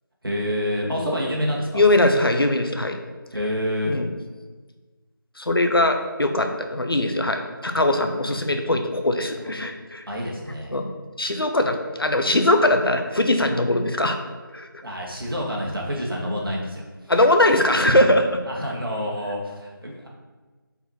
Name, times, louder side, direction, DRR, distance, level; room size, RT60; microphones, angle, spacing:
voice 1, 0.2-1.8 3.3-4.0 8.2-8.4 10.1-10.8 14.8-16.9 18.5-20.1, equal, 75° right, -2 dB, 2.0 m, -28 dB
voice 2, 1.7-3.0 3.8-4.1 5.4-10.1 10.7-10.9 11.2-14.2 14.5-14.8 17.1-18.4, left 1 dB, 80° left, 6 dB, 0.9 m, -21 dB
5.6 x 4.4 x 4.4 m, 1.3 s
figure-of-eight pair, 170°, 12 cm